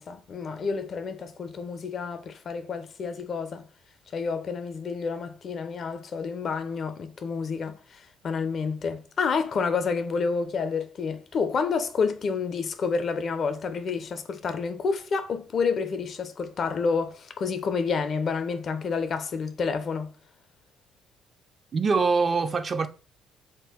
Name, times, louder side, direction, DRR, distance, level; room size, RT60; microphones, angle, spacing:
voice 1, 0.0-3.7 4.1-20.1, left 5 dB, 50° left, 0.4 m, -29 dB
voice 2, 21.7-22.9, right 4 dB, 40° right, 0.4 m, -23 dB
2.6 x 2.1 x 3.4 m
figure-of-eight pair, 50°, 0 cm